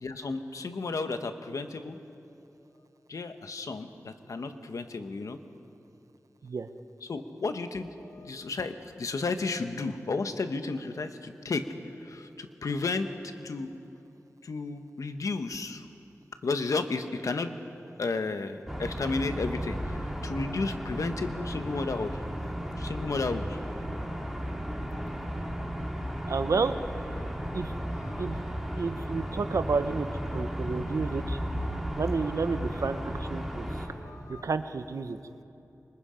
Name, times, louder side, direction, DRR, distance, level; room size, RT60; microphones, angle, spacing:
voice 1, 0.0-2.0 3.1-5.4 7.1-11.7 12.0-13.1 13.4-13.7 14.4-15.9 16.4-17.5 18.0-22.2 22.8-23.5 28.0-28.2 34.0-34.4, left 3 dB, 85° left, 8 dB, 1.1 m, -33 dB
sound 1, 18.7-33.9, equal, ahead, 2.9 m, -34 dB
voice 2, 26.3-26.7 27.5-27.7 28.2-28.4 28.7-30.1 30.3-31.4 32.0-33.9 34.3-35.2, right 4 dB, 75° right, 10 dB, 0.9 m, -30 dB
26.0 x 24.0 x 5.1 m, 2.8 s
wide cardioid pair, 70°, 6 cm